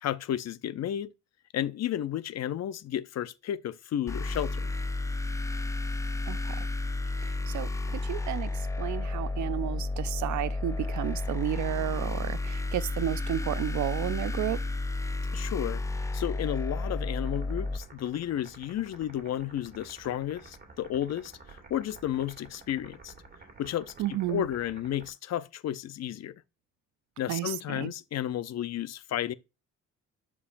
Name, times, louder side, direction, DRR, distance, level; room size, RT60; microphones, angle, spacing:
voice 1, 0.0-1.1 1.5-4.7 15.3-15.8 16.1-23.1 23.6-26.3 27.2-29.3, left 11 dB, 60° left, 0.6 m, -32 dB
sound 1, 4.1-17.8, left 2 dB, 10° left, 0.5 m, -32 dB
voice 2, 6.3-6.7 7.2-14.6 24.0-24.5 27.3-27.9, right 14 dB, 70° right, 0.6 m, -32 dB
sound 2, 17.2-25.1, right 3 dB, 30° right, 2.5 m, -51 dB
11.0 x 4.7 x 2.6 m
cardioid pair, 90°, 30 cm